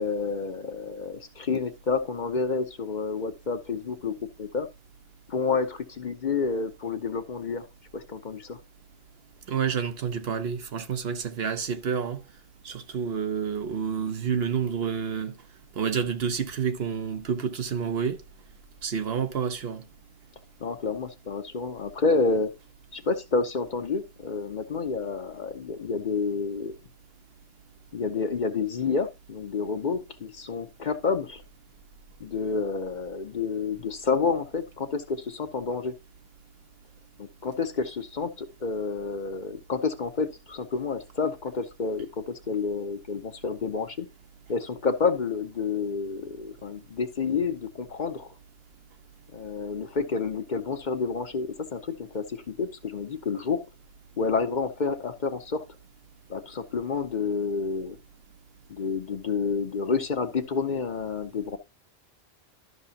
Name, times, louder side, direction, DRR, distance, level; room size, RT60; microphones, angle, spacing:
voice 1, 0.0-4.7 5.3-7.7 7.9-8.6 20.6-22.5 22.9-26.8 27.9-31.4 32.2-35.9 37.2-44.1 44.5-48.3 49.3-53.6 54.2-55.6 56.3-58.0 58.7-61.6, left 4 dB, 50° left, 0.9 m, -29 dB
voice 2, 9.5-12.2 12.6-15.3 15.8-18.2 18.8-19.8, right 7 dB, 65° right, 1.0 m, -29 dB
12.5 x 5.9 x 2.8 m
omnidirectional pair, 1.1 m